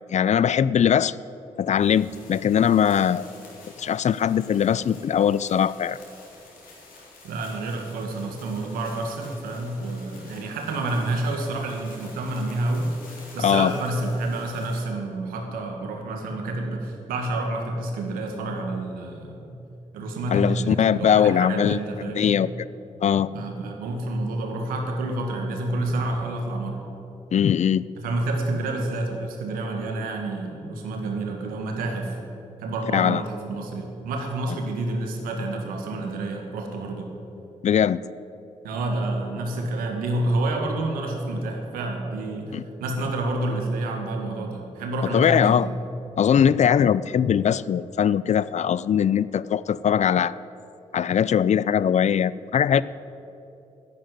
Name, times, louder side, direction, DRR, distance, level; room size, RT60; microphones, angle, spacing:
voice 1, 0.1-1.1 1.6-3.3 3.8-6.0 13.4-13.7 20.3-21.8 22.2-22.7 23.0-23.3 27.3-27.9 32.9-33.2 34.5-34.6 37.6-38.0 42.5-42.6 45.1-45.7 46.2-50.3 50.9-52.8, left 8 dB, 55° left, 18 dB, 0.4 m, -21 dB
sound 1, 1.7-14.8, left 3 dB, 80° left, 3.5 m, -49 dB
voice 2, 7.2-12.9 13.3-19.6 19.9-22.4 23.3-26.8 28.0-32.2 32.6-37.1 38.6-45.7, right 2 dB, 90° right, 3 dB, 1.7 m, -29 dB
10.5 x 9.3 x 9.2 m, 3.0 s
supercardioid pair, 45°, 14 cm